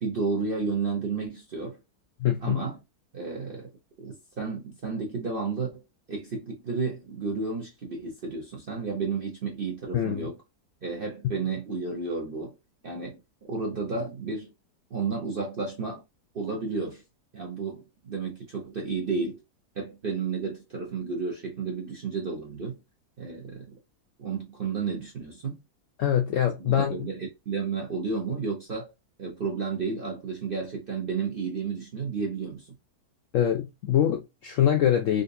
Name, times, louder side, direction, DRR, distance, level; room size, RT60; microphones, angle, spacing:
voice 1, 0.0-1.8 2.4-2.8 3.1-3.7 4.0-5.8 6.1-10.4 10.8-12.5 12.8-14.5 14.9-16.0 16.3-17.0 17.3-19.4 19.7-22.8 23.2-23.7 24.2-25.6 26.6-28.9 29.2-32.7, right 4 dB, 50° right, 0.6 m, -32 dB
voice 2, 2.2-2.6 9.9-10.3 26.0-27.0 33.3-35.2, left 10 dB, 75° left, 0.7 m, -24 dB
3.9 x 2.5 x 2.6 m
omnidirectional pair, 1.8 m